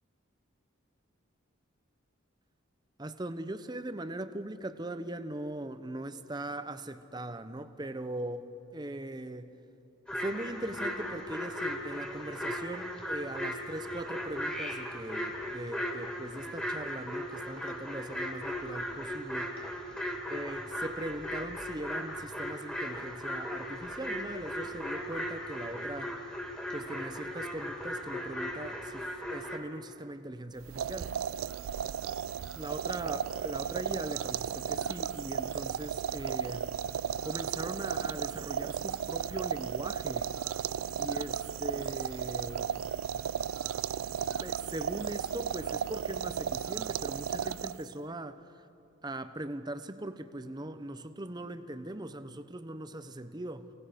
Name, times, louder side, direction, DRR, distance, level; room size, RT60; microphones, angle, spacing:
voice 1, 3.0-9.5 10.1-19.6 20.3-26.2 26.7-31.1 32.5-36.8 37.2-40.4 41.0-42.7 44.4-48.7 49.0-53.7, right 1 dB, 20° right, 0.7 m, -40 dB
sound 1, 10.1-29.6, equal, 5° left, 2.5 m, -37 dB
sound 2, 30.6-48.0, right 8 dB, 75° right, 0.3 m, -35 dB
29.0 x 18.0 x 5.2 m
head